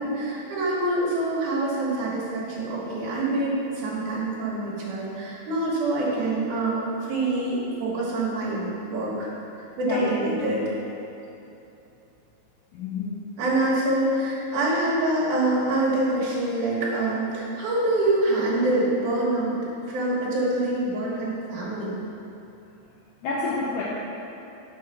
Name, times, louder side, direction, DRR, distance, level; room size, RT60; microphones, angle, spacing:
voice 1, 0.0-9.3 9.8-10.6 13.4-19.6 19.9-22.0, right 2 dB, 60° right, -7 dB, 2.7 m, -25 dB
voice 2, 12.7-13.2 23.2-23.8, left 4 dB, 85° left, -5 dB, 1.9 m, -29 dB
6.1 x 4.8 x 5.7 m, 2.9 s
omnidirectional pair, 4.5 m